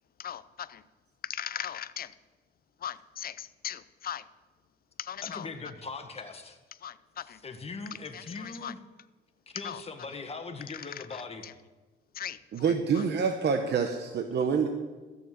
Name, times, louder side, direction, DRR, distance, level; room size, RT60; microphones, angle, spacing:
voice 1, 0.2-0.8 1.2-2.1 2.8-4.2 5.0-5.5 6.8-7.4 8.1-8.7 9.5-9.8 10.7-11.5 12.1-13.1, left 10 dB, 50° left, 15 dB, 0.6 m, -39 dB
voice 2, 5.2-6.6 7.2-8.8 9.5-11.5, left 4 dB, 30° left, 5 dB, 1.6 m, -40 dB
voice 3, 12.5-14.7, right 6 dB, 60° right, 6 dB, 1.0 m, -27 dB
13.5 x 6.9 x 7.7 m, 1.3 s
cardioid pair, 90°, 20 cm